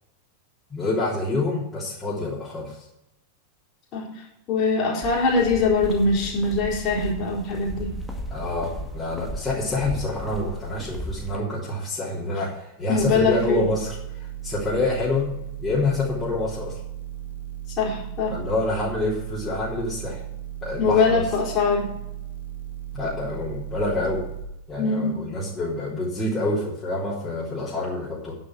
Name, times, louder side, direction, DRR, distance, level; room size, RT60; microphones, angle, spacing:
voice 1, 0.7-2.8 8.3-14.0 14.4-15.3 15.6-16.8 18.3-20.2 20.6-21.2 22.9-24.2 24.7-28.3, left 2 dB, 15° left, -8 dB, 3.3 m, -27 dB
voice 2, 4.5-7.9 12.9-13.6 17.8-18.3 20.8-21.9 24.8-25.2, left 4 dB, 35° left, -3 dB, 4.0 m, -22 dB
sound 1, 5.0-11.4, right 1 dB, ahead, 1.8 m, -35 dB
sound 2, 13.0-24.4, right 12 dB, 60° left, 2.0 m, -36 dB
10.0 x 7.8 x 6.0 m, 0.87 s
figure-of-eight pair, 90°, 0 cm